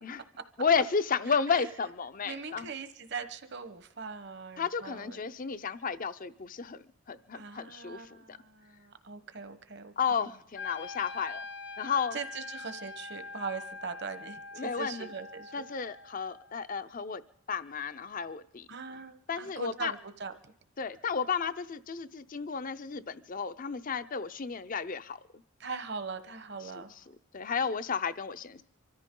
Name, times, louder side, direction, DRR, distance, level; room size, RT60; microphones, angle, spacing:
voice 1, 0.6-2.7 4.6-8.4 10.0-11.4 11.8-12.2 14.6-15.1 15.5-17.2 17.5-18.7 19.3-19.9 20.8-25.2 26.8-26.9 27.3-28.6, left 6 dB, 40° left, 13 dB, 0.6 m, -32 dB
voice 2, 1.3-1.7 2.2-5.2 7.3-10.3 12.1-15.9 18.7-20.5 25.6-26.9, right 5 dB, 55° right, 9 dB, 1.1 m, -41 dB
Wind instrument woodwind instrument, 10.5-16.6, left 4 dB, 55° left, 0.9 m, -44 dB
25.0 x 13.5 x 3.8 m, 0.65 s
head